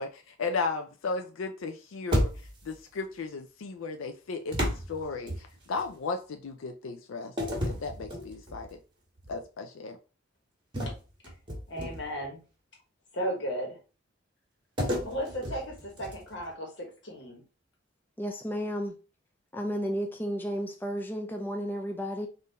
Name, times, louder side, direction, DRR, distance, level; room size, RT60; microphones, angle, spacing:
voice 1, 0.0-2.3 2.7-4.6 4.9-7.3 7.7-8.7 9.3-10.0, left 4 dB, 85° left, 0.4 m, -35 dB
sound 1, 2.1-2.8 4.5-5.9 7.4-8.7 9.2-9.4 10.7-12.2 14.8-16.4, equal, 25° right, 1.4 m, -32 dB
voice 2, 11.7-12.4 13.1-13.8 15.0-17.4, equal, 60° left, 1.3 m, -35 dB
voice 3, 18.2-18.9 19.5-22.3, equal, 10° left, 0.4 m, -32 dB
3.7 x 2.6 x 4.0 m
head